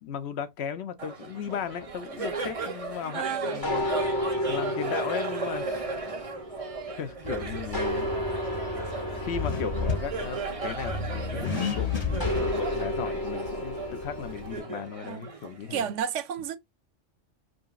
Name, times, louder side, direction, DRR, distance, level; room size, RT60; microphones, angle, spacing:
voice 1, 0.0-3.8 4.5-5.9 7.0-8.1 9.1-15.9, left 7 dB, 65° left, 0.9 m, -36 dB
Laughter, 1.0-16.0, right 4 dB, 35° right, 0.7 m, -36 dB
voice 2, 3.1-3.6 15.0-15.3 15.7-16.6, right 8 dB, 85° right, 0.9 m, -31 dB
sound 1, 3.6-7.2 7.7-11.4 12.2-14.9, left 1 dB, 15° left, 1.7 m, -33 dB
Accelerating revving vroom, 7.2-14.6, left 5 dB, 40° left, 0.7 m, -34 dB
5.2 x 2.9 x 2.4 m
omnidirectional pair, 1.2 m